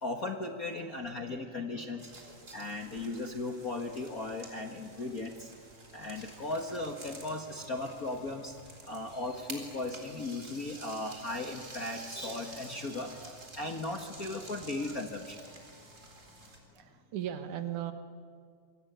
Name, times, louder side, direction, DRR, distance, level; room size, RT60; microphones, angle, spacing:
voice 1, 0.0-2.1 2.5-5.5 5.9-8.5 8.8-15.4, left 2 dB, 40° left, 4 dB, 1.4 m, -37 dB
voice 2, 0.8-2.5 16.7-17.9, right 10 dB, 80° right, 8 dB, 2.9 m, -41 dB
sound 1, 2.0-16.6, right 2 dB, 25° right, 4.1 m, -50 dB
27.0 x 23.5 x 9.3 m, 2.1 s
omnidirectional pair, 3.5 m